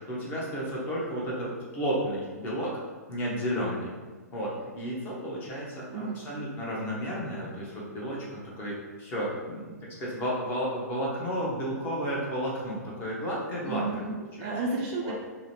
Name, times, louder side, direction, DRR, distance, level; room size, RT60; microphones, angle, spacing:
voice 1, 0.0-2.8 3.1-3.9 4.3-13.8 14.4-14.5 15.0-15.1, equal, 20° left, -4 dB, 0.8 m, -32 dB
voice 2, 13.6-15.1, right 3 dB, 30° right, -2 dB, 0.4 m, -32 dB
3.7 x 2.0 x 3.0 m, 1.3 s
figure-of-eight pair, 115°, 9 cm